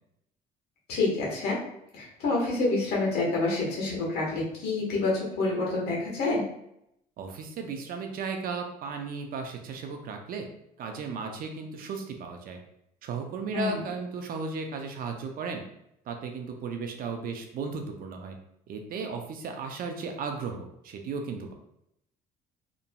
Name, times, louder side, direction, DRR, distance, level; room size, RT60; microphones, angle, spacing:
voice 1, 0.9-1.6 1.9-6.4 13.5-13.8, left 3 dB, 70° left, -3 dB, 1.2 m, -27 dB
voice 2, 7.2-10.5 10.8-12.6 13.0-15.6 16.1-18.4 18.7-21.5, right 4 dB, 60° right, 4 dB, 0.5 m, -35 dB
2.9 x 2.6 x 2.2 m, 0.78 s
cardioid pair, 110°, 17 cm